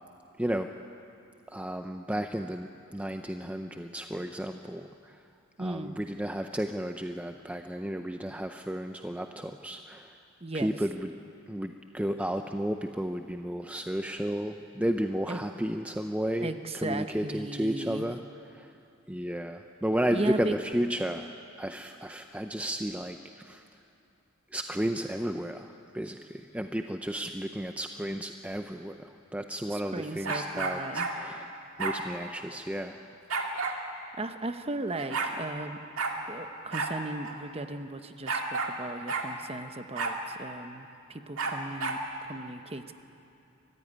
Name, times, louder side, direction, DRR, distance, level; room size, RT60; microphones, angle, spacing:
voice 1, 0.4-0.7 1.5-5.2 5.6-10.1 10.5-11.1 11.5-18.2 18.6-18.7 19.1-21.3 21.6-23.6 24.5-33.0, right 1 dB, 5° right, 6 dB, 0.5 m, -33 dB
voice 2, 5.6-6.0 10.4-10.7 15.3-15.4 16.4-18.1 20.1-20.5 29.7-31.1 34.2-35.8 36.3-42.9, right 2 dB, 30° right, 9 dB, 0.9 m, -36 dB
sound 1, 30.2-31.1 31.8-32.0 33.3-33.8 34.6-34.7 34.9-35.3 36.0-36.2 36.7-36.9 37.2-37.3 38.3-38.7 39.1-39.3 39.9-40.2 41.4-42.0, right 4 dB, 70° right, 2.2 m, -31 dB
23.5 x 15.5 x 9.7 m, 2.7 s
head